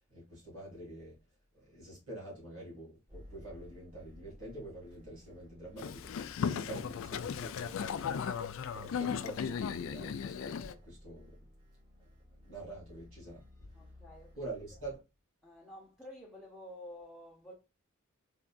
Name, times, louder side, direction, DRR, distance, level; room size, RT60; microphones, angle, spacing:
voice 1, 0.1-1.2 1.5-8.1 8.7-11.5 12.4-13.4 14.4-15.0, right 2 dB, 85° right, 2.2 m, -46 dB
sound 1, 3.1-15.0, left 1 dB, 25° right, 1.9 m, -56 dB
Boat Water vehicle, 5.8-10.7, left 7 dB, 70° left, 0.3 m, -36 dB
voice 2, 13.7-14.4 15.4-17.5, left 1 dB, ahead, 0.7 m, -50 dB
3.8 x 3.4 x 2.3 m
head